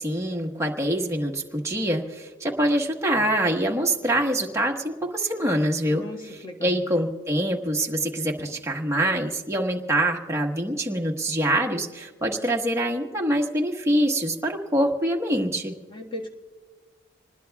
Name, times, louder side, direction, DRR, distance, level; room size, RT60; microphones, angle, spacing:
voice 1, 0.0-6.0 6.6-15.7, right 1 dB, 15° right, 0 dB, 1.3 m, -25 dB
voice 2, 5.8-6.8 15.9-16.3, left 1 dB, 25° left, 1 dB, 1.6 m, -37 dB
26.5 x 20.0 x 2.3 m, 1.4 s
head